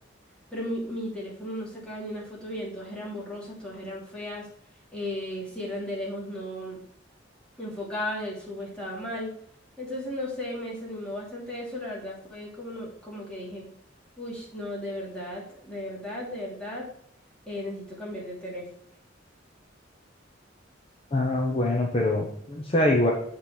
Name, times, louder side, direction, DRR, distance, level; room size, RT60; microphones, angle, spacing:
voice 1, 0.5-4.5 4.9-6.8 7.6-9.3 9.8-13.7 14.2-16.9 17.5-18.6, left 1 dB, 5° left, -6 dB, 2.7 m, -35 dB
voice 2, 21.1-23.1, left 1 dB, 30° left, -1 dB, 0.9 m, -24 dB
7.4 x 4.4 x 4.8 m, 0.68 s
head